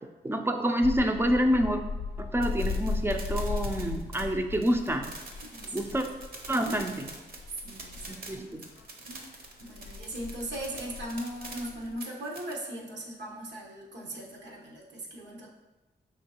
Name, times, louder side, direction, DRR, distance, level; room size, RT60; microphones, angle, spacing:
voice 1, 0.0-1.8 2.2-5.1 5.7-6.0 6.5-7.1 8.1-8.6, equal, 15° right, 5 dB, 0.4 m, -27 dB
sound 1, 0.8-8.8 9.5-11.9, left 4 dB, 85° left, 0.4 m, -37 dB
sound 2, 2.4-12.5, right 2 dB, 55° right, 0.8 m, -45 dB
voice 2, 5.4-5.8 6.6-6.8 7.6-8.5 9.1-15.5, right 1 dB, 90° right, -2 dB, 1.1 m, -39 dB
5.3 x 3.3 x 2.9 m, 1.1 s
wide cardioid pair, 105°, 18 cm